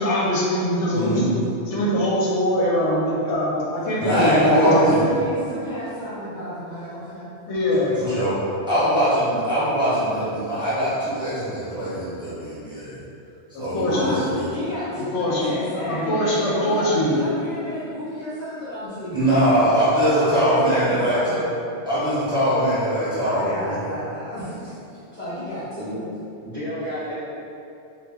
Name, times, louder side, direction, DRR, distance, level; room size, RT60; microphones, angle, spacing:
voice 1, 0.0-1.4 1.7-5.1 7.5-8.0 13.5-14.3 15.1-15.5 15.9-17.2, equal, 75° left, -5 dB, 0.9 m, -22 dB
voice 2, 0.9-1.3 4.0-5.0 8.0-8.3 8.7-13.0 13.6-14.5 19.1-21.4 21.8-23.8, right 1 dB, 5° right, -13 dB, 0.8 m, -21 dB
voice 3, 4.1-7.3 13.8-19.8 20.1-21.4 23.2-26.0, left 1 dB, 55° left, -10 dB, 0.5 m, -32 dB
voice 4, 15.4-16.9 25.7-26.0 26.4-27.1, equal, 40° right, -13 dB, 0.5 m, -32 dB
2.2 x 2.1 x 3.3 m, 2.7 s
omnidirectional pair, 1.2 m